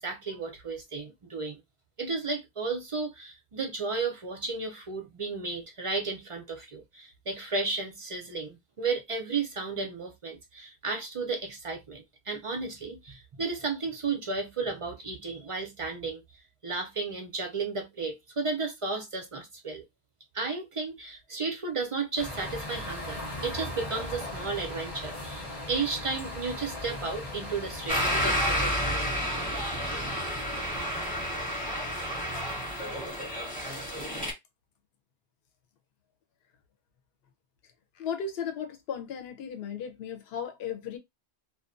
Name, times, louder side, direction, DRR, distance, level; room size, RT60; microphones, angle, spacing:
voice 1, 0.0-1.6 2.0-16.2 16.6-19.8 20.3-29.1, right 4 dB, 50° right, 0.4 m, -33 dB
sound 1, 22.2-28.7, left 1 dB, 35° left, 0.7 m, -38 dB
sound 2, 27.9-34.3, equal, 10° left, 0.9 m, -30 dB
voice 2, 38.0-41.0, left 7 dB, 65° left, 0.8 m, -35 dB
2.4 x 2.1 x 2.5 m
omnidirectional pair, 1.2 m